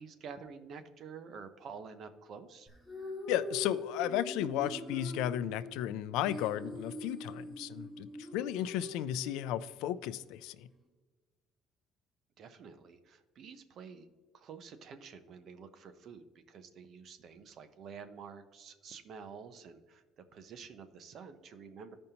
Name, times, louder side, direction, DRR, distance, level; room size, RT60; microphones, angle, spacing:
voice 1, 0.0-2.7 12.4-14.1 14.3-22.0, right 6 dB, 40° right, 0.6 m, -49 dB
sound 1, 2.7-9.7, left 2 dB, 5° right, 1.2 m, -43 dB
voice 2, 3.3-10.7, left 12 dB, 85° left, 0.3 m, -34 dB
15.0 x 5.2 x 2.8 m
cardioid pair, 175°, 0 cm